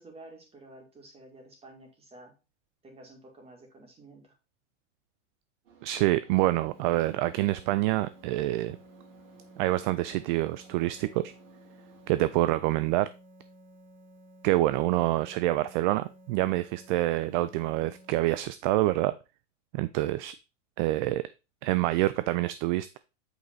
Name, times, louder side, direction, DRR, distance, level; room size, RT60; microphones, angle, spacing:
voice 1, 0.0-2.3 2.8-4.4, right 2 dB, 15° right, 2 dB, 2.7 m, -51 dB
sound 1, 5.6-12.6, right 6 dB, 85° right, 5.1 m, -58 dB
voice 2, 5.8-8.8 9.6-11.3 12.1-13.1 14.4-19.1 19.7-20.3 20.8-21.2 21.6-23.0, right 16 dB, 45° right, 14 dB, 0.4 m, -26 dB
sound 2, 6.7-18.1, equal, 70° right, 4.5 m, -54 dB
8.0 x 4.8 x 3.9 m, 0.29 s
supercardioid pair, 135°, 36 cm